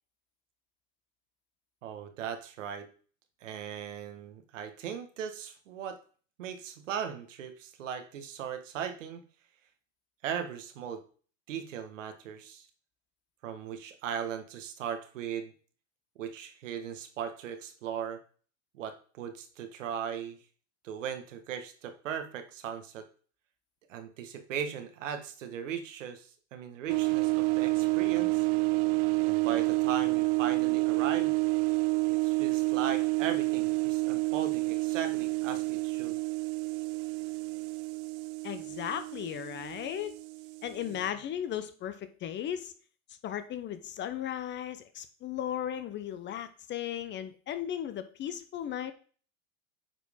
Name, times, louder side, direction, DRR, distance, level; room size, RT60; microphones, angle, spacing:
voice 1, 1.8-2.9 3.4-6.0 6.4-9.2 10.2-11.0 11.5-12.7 13.4-15.5 16.2-18.2 18.7-20.4 20.8-23.1 23.9-28.5 29.2-31.4 32.1-36.2 40.9-41.0, right 8 dB, 80° right, 7 dB, 1.6 m, -38 dB
sound 1, 26.9-41.1, right 26 dB, 45° right, 0.4 m, -29 dB
voice 2, 38.4-40.2 40.6-42.7 43.2-48.9, left 10 dB, 30° left, 11 dB, 0.8 m, -36 dB
9.0 x 4.7 x 3.7 m, 0.41 s
hypercardioid pair, 115°, 37 cm